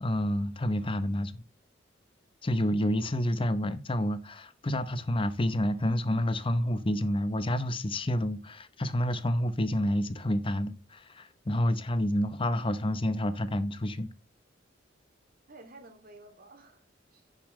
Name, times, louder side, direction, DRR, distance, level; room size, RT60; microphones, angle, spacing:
voice 1, 0.0-1.4 2.4-14.1, left 1 dB, 30° left, 0.8 m, -29 dB
voice 2, 15.5-17.4, right 2 dB, 50° right, 2.6 m, -53 dB
10.0 x 7.2 x 3.1 m
head